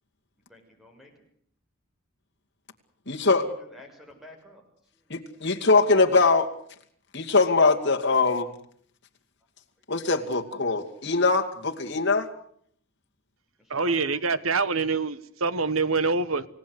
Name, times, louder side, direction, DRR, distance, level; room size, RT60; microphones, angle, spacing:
voice 1, 0.5-1.1 3.2-4.6 13.7-14.2, left 1 dB, ahead, 6.1 m, -49 dB
voice 2, 3.1-3.5 5.1-6.5 7.1-8.5 9.9-12.3, left 3 dB, 55° left, 2.5 m, -22 dB
voice 3, 13.7-16.5, right 4 dB, 85° right, 1.2 m, -25 dB
29.5 x 17.5 x 8.1 m
head